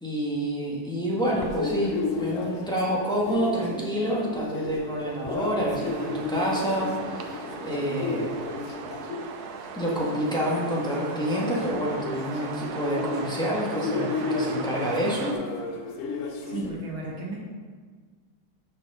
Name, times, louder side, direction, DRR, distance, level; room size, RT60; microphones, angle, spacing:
voice 1, 0.0-8.3 9.7-15.4, equal, ahead, -5 dB, 1.3 m, -28 dB
sound 1, 1.2-16.7, left 3 dB, 65° left, 0.8 m, -33 dB
sound 2, 5.9-15.3, right 6 dB, 65° right, 1.0 m, -38 dB
voice 2, 16.4-17.4, right 2 dB, 90° right, -3 dB, 2.6 m, -34 dB
6.5 x 6.1 x 5.5 m, 1.5 s
omnidirectional pair, 2.2 m